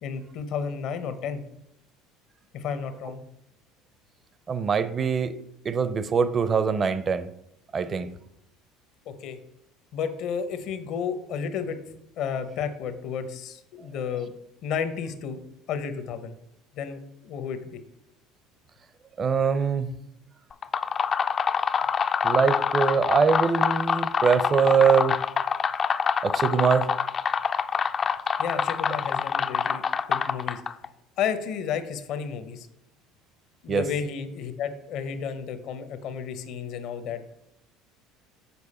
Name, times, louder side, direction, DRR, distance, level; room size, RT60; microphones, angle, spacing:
voice 1, 0.0-1.4 2.5-3.2 9.1-9.4 9.9-11.8 12.2-14.3 14.6-15.4 15.7-16.3 16.7-17.8 28.4-30.6 31.2-32.7 33.6-37.2, left 7 dB, 60° left, 10 dB, 0.8 m, -32 dB
voice 2, 4.5-5.4 5.6-7.3 7.7-8.1 19.2-19.9 22.2-25.2 26.2-26.9 33.7-33.8, right 6 dB, 35° right, 13 dB, 0.5 m, -23 dB
sound 1, 20.5-30.9, left 6 dB, 35° left, 0.3 m, -26 dB
7.0 x 4.5 x 4.2 m, 0.80 s
supercardioid pair, 90°, 0 cm